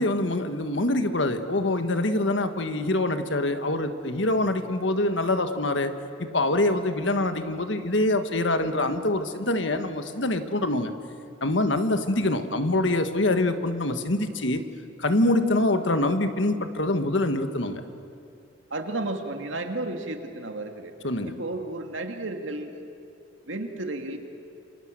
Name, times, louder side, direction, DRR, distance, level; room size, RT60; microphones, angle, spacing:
voice 1, 0.0-5.9 6.2-10.9 11.4-14.6 15.0-17.8 21.0-21.4, left 2 dB, 70° left, 8 dB, 1.6 m, -25 dB
voice 2, 18.7-20.9 21.4-22.8 23.5-24.2, right 2 dB, 75° right, 4 dB, 2.5 m, -32 dB
28.5 x 25.5 x 7.7 m, 2.6 s
head